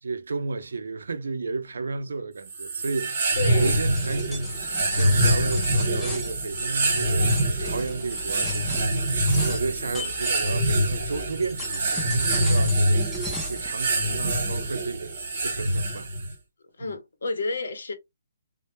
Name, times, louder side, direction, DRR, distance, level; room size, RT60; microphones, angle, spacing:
voice 1, 0.0-15.1 15.4-16.3 16.8-16.9, right 4 dB, 90° right, 0.4 m, -33 dB
sound 1, 2.5-16.3, right 1 dB, 40° right, 0.9 m, -25 dB
voice 2, 3.4-3.8 12.5-12.6 16.8-17.9, left 3 dB, 75° left, 0.7 m, -30 dB
sound 2, 3.4-10.9 11.4-13.7, equal, 5° left, 0.5 m, -37 dB
2.1 x 2.0 x 3.0 m
hypercardioid pair, 175°, 0 cm